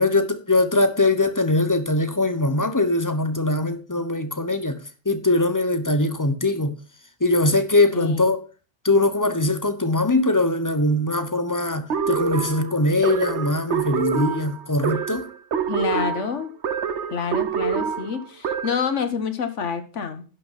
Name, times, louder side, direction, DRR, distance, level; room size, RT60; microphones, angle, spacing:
voice 1, 0.0-4.8 5.1-6.8 7.2-8.4 8.8-15.3, left 2 dB, 15° left, 0.9 m, -21 dB
sound 1, 11.9-18.9, right 7 dB, 70° right, 1.2 m, -26 dB
voice 2, 15.7-16.5 17.1-20.2, left 5 dB, 85° left, 1.6 m, -27 dB
10.5 x 6.1 x 5.8 m
omnidirectional pair, 1.2 m